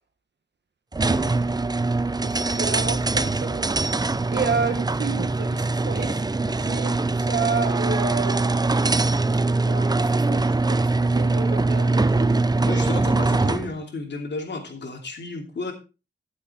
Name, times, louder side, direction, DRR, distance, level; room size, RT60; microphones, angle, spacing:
sound 1, 0.9-13.7, right 3 dB, 20° right, 0.5 m, -22 dB
voice 1, 2.2-3.7 4.3-8.7 9.3-12.3, right 5 dB, 75° right, 5 dB, 1.6 m, -31 dB
voice 2, 12.7-15.7, left 3 dB, 80° left, 3 dB, 2.9 m, -32 dB
13.0 x 7.5 x 4.3 m, 0.30 s
wide cardioid pair, 95°, 18 cm